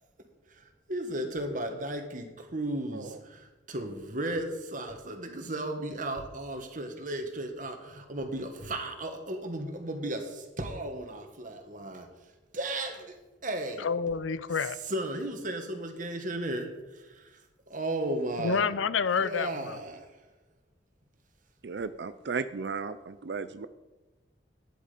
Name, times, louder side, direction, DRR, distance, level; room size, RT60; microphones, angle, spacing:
voice 1, 0.5-12.1 12.5-13.2 13.4-13.9 14.8-17.4 17.7-18.7 19.2-20.1, right 1 dB, 45° right, 5 dB, 1.7 m, -35 dB
voice 2, 13.8-14.8 18.4-19.8, left 6 dB, 90° left, 16 dB, 0.6 m, -28 dB
voice 3, 21.6-23.7, right 5 dB, 60° right, 12 dB, 0.5 m, -35 dB
13.0 x 10.0 x 5.1 m, 1.1 s
head